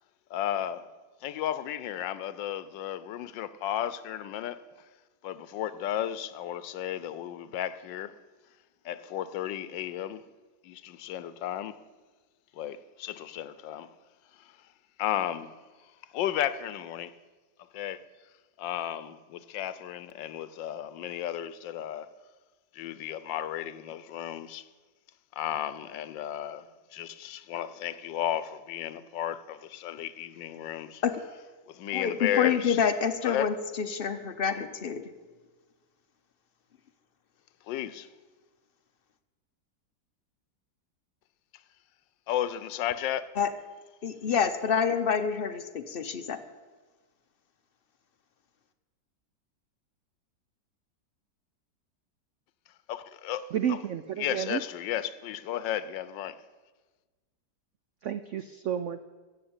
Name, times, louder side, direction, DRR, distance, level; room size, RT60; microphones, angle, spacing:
voice 1, 0.3-0.9 1.2-4.6 5.2-8.2 8.8-10.2 10.6-11.8 12.5-13.9 14.4-14.6 15.0-15.5 16.1-17.1 17.7-18.0 18.6-22.1 22.7-24.7 25.3-31.0 31.7-32.8 33.2-33.5 37.7-38.1 42.3-43.3 52.9-53.5 54.2-56.4, left 11 dB, 85° left, 1.4 m, -33 dB
voice 2, 31.9-35.0 43.4-43.5 44.0-46.4, left 7 dB, 55° left, 0.6 m, -27 dB
voice 3, 53.5-54.6 58.0-59.0, right 9 dB, 80° right, 0.6 m, -31 dB
14.5 x 8.1 x 8.7 m
omnidirectional pair, 1.9 m